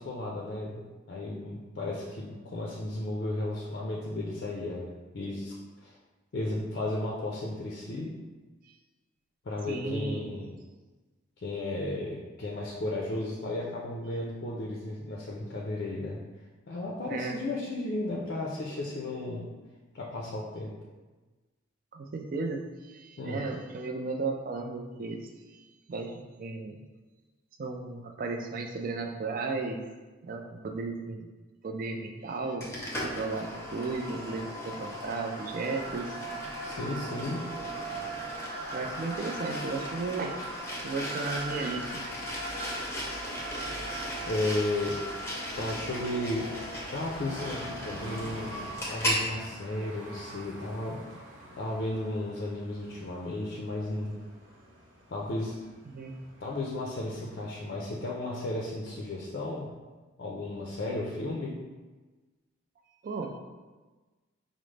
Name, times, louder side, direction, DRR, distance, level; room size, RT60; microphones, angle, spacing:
voice 1, 0.0-6.0 6.3-8.1 9.4-10.5 11.4-16.2 16.7-19.5 19.9-20.7 23.2-23.4 36.6-37.4 44.3-45.0 45.6-46.5 46.9-51.0 51.6-54.1 55.1-55.5 56.4-59.7 60.2-61.6, left 2 dB, 50° left, -3 dB, 0.4 m, -34 dB
voice 2, 9.7-10.3 17.1-17.4 21.9-25.2 25.9-26.8 27.6-29.8 30.2-31.3 31.6-32.7 33.0-36.1 36.6-36.8 38.7-40.4 40.8-42.2 55.9-56.1 63.0-63.3, right 3 dB, 45° right, 4 dB, 0.3 m, -34 dB
sound 1, 32.6-49.2, equal, 15° left, 0.6 m, -36 dB
sound 2, 45.1-57.6, right 1 dB, 75° right, 0.9 m, -47 dB
5.0 x 2.0 x 3.2 m, 1.3 s
head